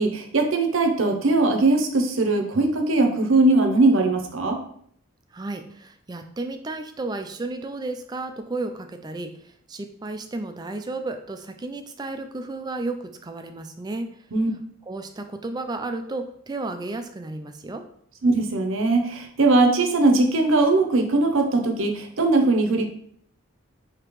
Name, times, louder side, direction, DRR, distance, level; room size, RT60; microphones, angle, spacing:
voice 1, 0.0-4.6 14.3-14.5 18.2-22.9, right 2 dB, 70° right, 4 dB, 0.7 m, -20 dB
voice 2, 5.3-14.1 14.9-17.8, right 2 dB, 20° right, 6 dB, 0.3 m, -33 dB
5.1 x 2.9 x 3.1 m, 0.65 s
head